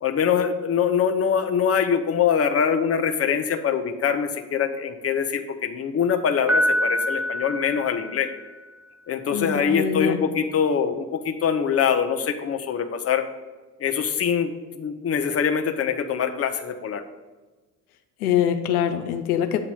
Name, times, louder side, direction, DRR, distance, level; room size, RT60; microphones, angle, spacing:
voice 1, 0.0-8.3 9.1-13.2 13.8-17.0, left 7 dB, 35° left, 7 dB, 0.8 m, -23 dB
Piano, 6.5-8.6, equal, 5° right, 0.3 m, -25 dB
voice 2, 9.3-10.2 18.2-19.6, left 9 dB, 85° left, 6 dB, 0.6 m, -24 dB
8.2 x 2.9 x 6.2 m, 1.3 s
hypercardioid pair, 55°, 44 cm